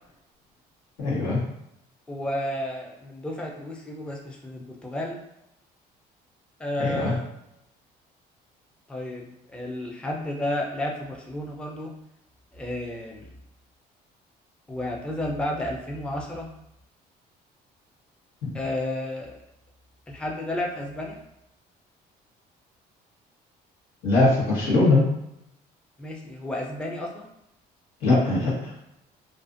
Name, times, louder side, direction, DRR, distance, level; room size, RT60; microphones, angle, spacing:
voice 1, 1.0-1.4 6.8-7.1 18.4-18.6 24.0-25.1 28.0-28.7, left 2 dB, 85° left, -6 dB, 1.1 m, -21 dB
voice 2, 2.1-5.2 6.6-7.2 8.9-11.9 12.5-13.3 14.7-16.5 18.5-19.4 20.1-21.2 26.0-27.3, left 1 dB, 5° left, 0 dB, 0.4 m, -32 dB
2.5 x 2.4 x 2.5 m, 0.81 s
cardioid pair, 110°, 17 cm